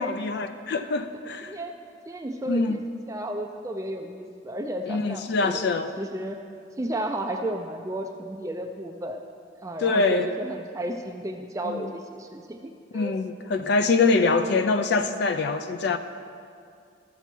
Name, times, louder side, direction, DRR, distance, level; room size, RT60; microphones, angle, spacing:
voice 1, 0.0-1.6 2.5-2.8 4.9-5.9 9.8-10.3 11.6-11.9 12.9-16.0, left 3 dB, 55° left, 9 dB, 0.4 m, -24 dB
voice 2, 1.4-1.7 2.1-2.8 3.1-5.6 6.0-6.4 6.8-9.2 9.6-13.1, right 1 dB, 15° right, 4 dB, 0.4 m, -33 dB
12.5 x 7.0 x 4.4 m, 2.3 s
head